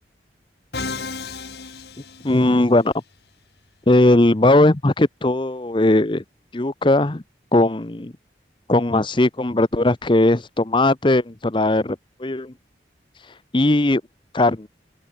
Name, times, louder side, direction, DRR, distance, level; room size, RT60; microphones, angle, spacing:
Musical instrument, 0.7-2.8, left 4 dB, 70° left, 2.8 m, -33 dB
voice 1, 2.2-2.9 3.9-6.2 6.5-7.2 7.5-8.1 8.7-12.5 13.1-14.0 14.3-14.7, left 2 dB, 30° left, 0.8 m, -18 dB
open air
head